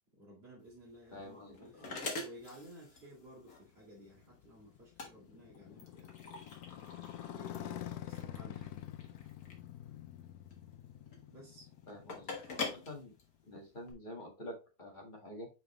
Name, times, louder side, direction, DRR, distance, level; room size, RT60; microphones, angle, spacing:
voice 1, 0.1-6.5 7.2-8.7 11.3-11.7, equal, 40° right, 2.7 m, -55 dB
sound 1, 0.6-13.9, left 3 dB, 70° left, 1.9 m, -46 dB
voice 2, 1.1-1.9 11.9-13.1 13.5-15.5, left 1 dB, 30° left, 1.9 m, -48 dB
Motorcycle, 3.4-13.4, left 11 dB, 85° left, 1.2 m, -47 dB
6.0 x 5.1 x 3.1 m
omnidirectional pair, 1.6 m